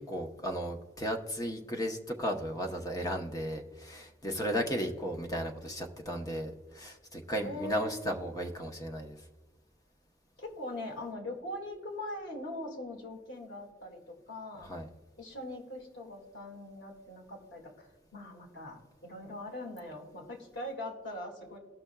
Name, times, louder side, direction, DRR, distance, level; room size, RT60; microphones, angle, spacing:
voice 1, 0.0-9.2 14.6-14.9, equal, 20° left, 3 dB, 0.8 m, -35 dB
voice 2, 7.4-8.0 10.4-14.7 15.2-21.6, left 1 dB, 85° left, 0 dB, 2.1 m, -41 dB
17.5 x 6.0 x 2.3 m, 1.3 s
head